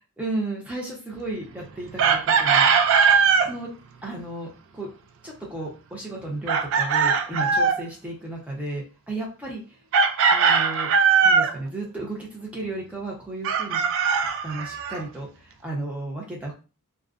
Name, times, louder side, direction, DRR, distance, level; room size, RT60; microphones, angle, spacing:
voice 1, 0.2-2.7 3.4-3.7 4.0-4.5 4.7-4.9 5.2-9.6 10.3-10.9 11.2-13.8 14.4-15.3 15.6-16.5, right 2 dB, 5° right, -3 dB, 0.8 m, -33 dB
Chicken rooster, 2.0-3.5 6.5-7.8 9.9-11.5 13.4-15.0, right 6 dB, 60° right, 0.3 m, -20 dB
2.4 x 2.1 x 2.4 m, 0.33 s
head